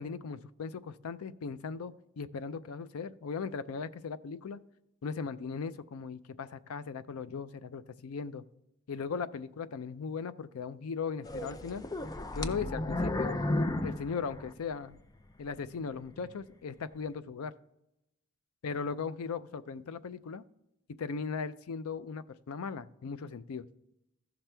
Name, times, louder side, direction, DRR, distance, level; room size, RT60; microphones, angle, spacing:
voice 1, 0.0-4.6 5.0-8.4 8.9-11.8 12.3-13.4 13.8-15.0 15.4-17.5 18.6-20.4 21.0-23.7, left 5 dB, 90° left, 14 dB, 0.4 m, -38 dB
sound 1, 11.2-15.0 15.5-15.6 16.2-16.3, left 1 dB, 15° left, 0.3 m, -33 dB
14.5 x 5.9 x 3.3 m, 0.86 s
head